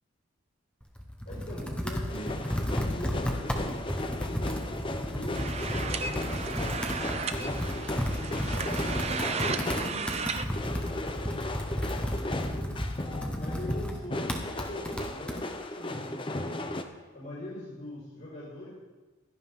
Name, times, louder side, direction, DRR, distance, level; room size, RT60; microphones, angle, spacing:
Computer keyboard, 0.8-15.4, equal, 5° left, 1.2 m, -33 dB
voice 1, 1.3-4.7 5.0-7.0 7.6-12.8 13.4-16.6 17.1-18.7, left 1 dB, 45° left, -9 dB, 5.2 m, -43 dB
sound 1, 2.1-10.1 10.5-16.8, left 1 dB, 25° left, 0.8 m, -36 dB
sound 2, 5.3-10.5, right 5 dB, 30° right, 0.6 m, -34 dB
16.5 x 13.5 x 3.8 m, 1.3 s
head